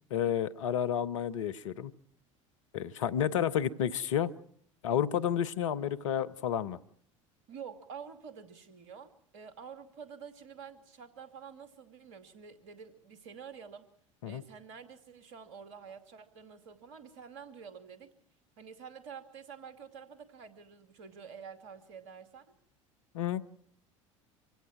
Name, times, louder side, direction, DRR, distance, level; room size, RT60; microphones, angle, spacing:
voice 1, 0.1-1.9 2.7-4.3 4.8-6.8 14.2-14.4 23.1-23.4, left 9 dB, 70° left, 13 dB, 1.0 m, -31 dB
voice 2, 7.5-13.9 14.3-18.1 18.6-22.5, right 6 dB, 65° right, 10 dB, 2.7 m, -48 dB
25.5 x 16.5 x 6.1 m, 0.62 s
figure-of-eight pair, 70°, 17 cm